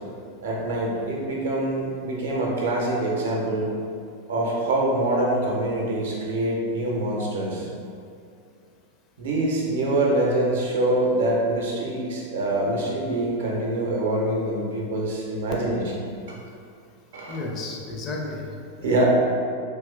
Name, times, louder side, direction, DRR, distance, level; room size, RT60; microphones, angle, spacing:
voice 1, 0.4-3.7 4.3-7.7 9.2-16.4 17.1-17.4 18.8-19.0, right 1 dB, 60° right, -2 dB, 0.6 m, -25 dB
voice 2, 17.3-18.5 18.8-19.0, left 2 dB, 30° left, -1 dB, 0.4 m, -32 dB
3.4 x 2.9 x 2.2 m, 2.3 s
figure-of-eight pair, 90°, 0 cm